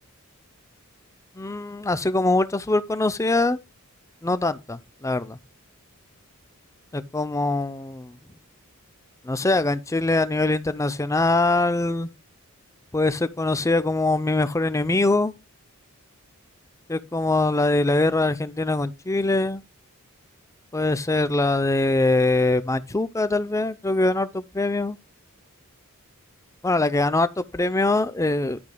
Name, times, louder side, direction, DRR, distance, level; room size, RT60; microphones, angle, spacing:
voice 1, 1.4-3.6 4.2-5.4 6.9-8.2 9.2-12.1 12.9-15.3 16.9-19.6 20.7-25.0 26.6-28.6, left 2 dB, 15° left, 0.5 m, -23 dB
10.5 x 8.5 x 2.2 m
head